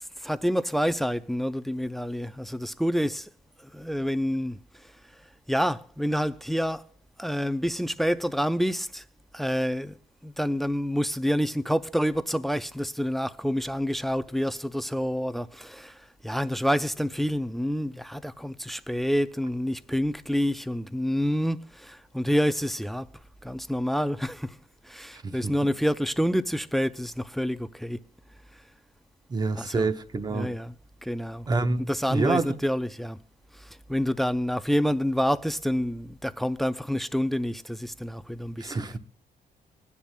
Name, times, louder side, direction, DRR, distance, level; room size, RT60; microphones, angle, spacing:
voice 1, 0.2-3.3 3.7-4.6 5.5-6.8 7.2-9.0 9.3-9.9 10.2-16.0 16.2-23.1 23.4-24.6 24.9-28.0 29.6-29.9 30.3-30.7 31.0-31.5 31.9-33.2 33.6-38.8, equal, ahead, 0.5 m, -28 dB
voice 2, 25.1-25.5 29.3-30.5 31.5-32.6 38.6-39.0, right 3 dB, 25° right, 1.0 m, -27 dB
25.5 x 10.0 x 2.2 m
cardioid pair, 145°, 16 cm